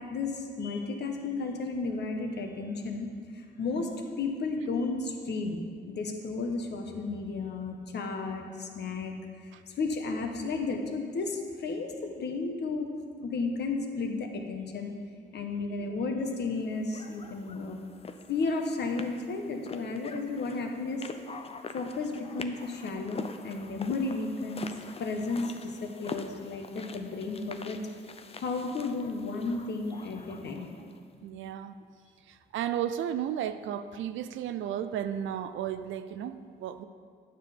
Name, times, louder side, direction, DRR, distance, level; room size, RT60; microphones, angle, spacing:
voice 1, 0.0-3.1 3.3-5.6 5.9-9.1 9.4-9.5 9.8-12.9 13.2-14.9 15.3-17.8 18.3-21.1 21.7-24.7 25.0-27.8 28.4-30.8, left 3 dB, 60° left, 3 dB, 1.3 m, -33 dB
sound 1, 16.9-31.0, left 4 dB, 30° left, 0.6 m, -45 dB
voice 2, 31.2-31.8 32.3-36.8, right 10 dB, 75° right, 12 dB, 0.5 m, -34 dB
9.6 x 6.9 x 5.3 m, 2.1 s
cardioid pair, 90°, 20 cm